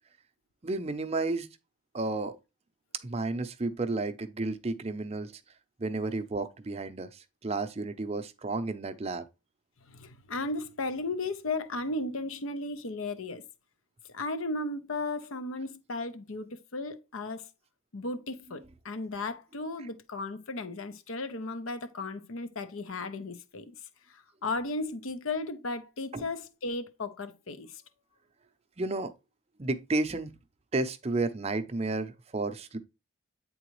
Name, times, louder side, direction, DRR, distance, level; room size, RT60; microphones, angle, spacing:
voice 1, 0.6-1.5 1.9-2.3 3.0-5.3 5.8-9.2 26.1-26.2 28.8-29.1 29.6-30.3 30.7-32.8, right 2 dB, 30° right, 0.5 m, -32 dB
voice 2, 9.9-13.4 14.1-17.5 17.9-23.8 24.1-27.8, left 2 dB, 80° left, 0.7 m, -35 dB
9.0 x 3.8 x 3.1 m
head